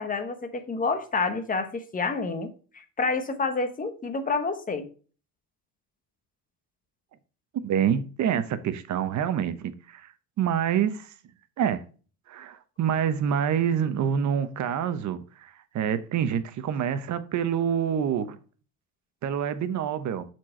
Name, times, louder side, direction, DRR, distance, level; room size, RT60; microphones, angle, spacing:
voice 1, 0.0-4.8, left 4 dB, 25° left, 1.1 m, -29 dB
voice 2, 7.5-10.1 10.4-11.1 11.6-11.8 12.3-18.4 19.2-20.3, right 8 dB, 55° right, 0.9 m, -27 dB
7.3 x 4.6 x 4.4 m
cardioid pair, 135°, 33 cm